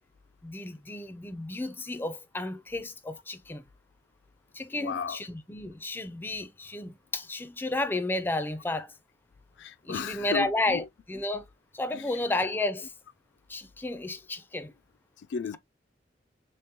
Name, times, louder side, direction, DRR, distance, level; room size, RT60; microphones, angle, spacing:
voice 1, 0.4-3.6 4.5-8.9 9.9-11.4 11.7-12.9 13.5-14.7, left 2 dB, 10° left, 0.4 m, -32 dB
voice 2, 4.7-5.2 9.6-10.8 11.9-12.1 15.2-15.6, left 6 dB, 80° left, 0.3 m, -34 dB
3.6 x 3.3 x 2.8 m
head